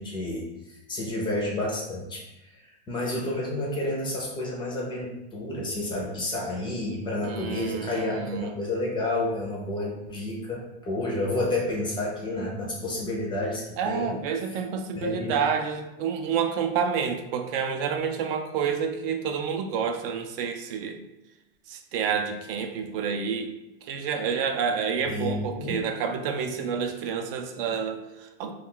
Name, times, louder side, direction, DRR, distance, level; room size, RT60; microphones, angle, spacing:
voice 1, 0.0-14.2 14.5-14.6 14.9-15.4 24.9-25.9, left 2 dB, 15° left, -2 dB, 0.4 m, -30 dB
voice 2, 7.2-8.5 13.8-21.0 21.7-23.5 23.8-28.5, right 6 dB, 65° right, 6 dB, 0.4 m, -29 dB
2.3 x 2.2 x 3.6 m, 0.96 s
supercardioid pair, 145°, 31 cm